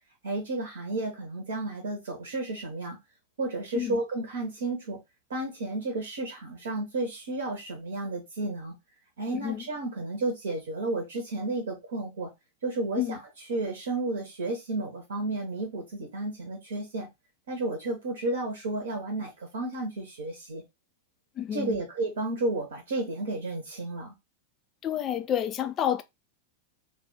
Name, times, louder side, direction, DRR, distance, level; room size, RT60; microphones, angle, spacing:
voice 1, 0.2-3.0 3.4-5.0 5.3-8.8 9.2-12.3 12.6-13.2 13.5-17.1 17.5-20.6 21.5-24.1, right 2 dB, 65° right, 0.8 m, -32 dB
voice 2, 9.3-9.6 13.0-13.2 21.4-21.8 24.8-26.0, left 10 dB, 30° left, 0.4 m, -29 dB
2.4 x 2.3 x 3.8 m
figure-of-eight pair, 90°, 0 cm